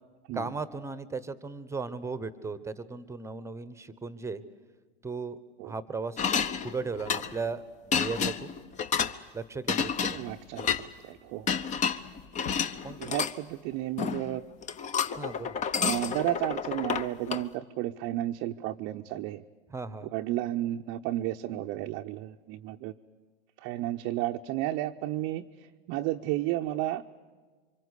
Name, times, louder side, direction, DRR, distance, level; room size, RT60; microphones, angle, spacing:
voice 1, 0.3-4.4 5.0-6.2 6.6-8.5 9.3-10.2 12.8-13.0 15.2-15.6 19.7-20.1, right 4 dB, 10° right, 14 dB, 1.0 m, -36 dB
sound 1, 6.2-7.5 7.9-9.2 9.7-10.8 11.5-13.3 14.0-14.4 14.6-17.4, left 7 dB, 25° left, 0.8 m, -30 dB
voice 2, 10.1-10.7 11.0-11.5 13.0-14.5 15.8-19.4 20.1-22.9 23.6-27.0, right 14 dB, 40° right, 3 dB, 0.7 m, -32 dB
27.5 x 24.5 x 8.3 m, 1.4 s
hypercardioid pair, 115°, 31 cm